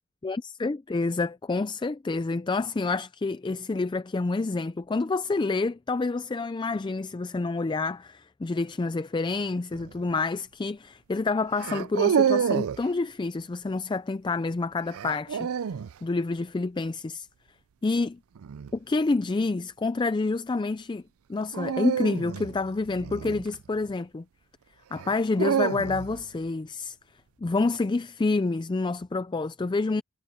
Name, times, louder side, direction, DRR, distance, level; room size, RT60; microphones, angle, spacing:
voice 1, 0.2-15.5 16.0-17.3 17.8-18.2 18.7-21.0 21.3-24.2 24.9-27.0 27.4-30.0, left 3 dB, 20° left, 0.3 m, -28 dB
sound 1, 9.7-10.0 11.6-12.8 14.9-15.9 18.4-18.7 21.5-23.9 25.0-26.3, right 7 dB, 75° right, 0.4 m, -28 dB
head